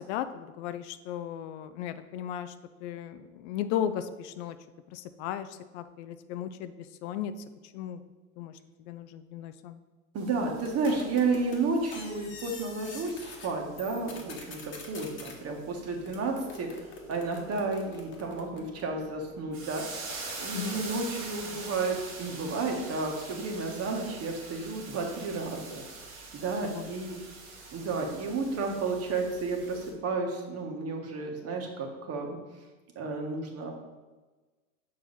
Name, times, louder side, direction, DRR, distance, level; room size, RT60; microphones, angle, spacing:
voice 1, 0.0-2.5 2.8-4.6 4.9-6.7 7.0-7.3 7.7-8.0 8.4-9.8 20.5-20.9 26.6-26.9, left 10 dB, 60° left, 11 dB, 0.5 m, -36 dB
voice 2, 10.1-25.8 26.3-27.1 27.7-32.4 32.9-33.7, right 3 dB, 40° right, 2 dB, 1.6 m, -32 dB
sound 1, 10.2-29.9, right 3 dB, 85° right, 1.7 m, -45 dB
sound 2, 10.7-13.5 13.8-15.4 16.1-19.0 19.7-21.2, left 4 dB, 30° left, 1.3 m, -46 dB
6.3 x 5.4 x 4.1 m, 1.2 s
hypercardioid pair, 95°, 39 cm